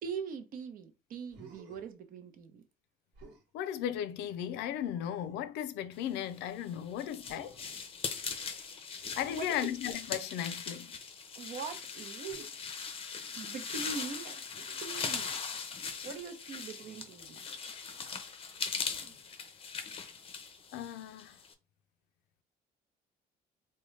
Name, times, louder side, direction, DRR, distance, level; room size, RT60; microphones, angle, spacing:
voice 1, 0.0-2.6 9.3-9.5 11.4-12.5 13.3-14.4 14.8-15.4 16.0-17.4, right 6 dB, 55° right, 0.7 m, -42 dB
Human voice, 1.3-1.9 3.1-3.5 4.8-5.5 7.2-7.9 9.0-10.2 12.3-12.5 14.5-14.8 16.8-17.3 18.9-19.4, right 3 dB, 75° right, 1.2 m, -56 dB
voice 2, 3.5-7.6 9.2-10.9 20.7-21.4, left 10 dB, 90° left, 0.4 m, -36 dB
sound 1, 6.4-21.5, left 5 dB, 35° left, 0.5 m, -40 dB
3.6 x 2.2 x 3.2 m
cardioid pair, 110°, 17 cm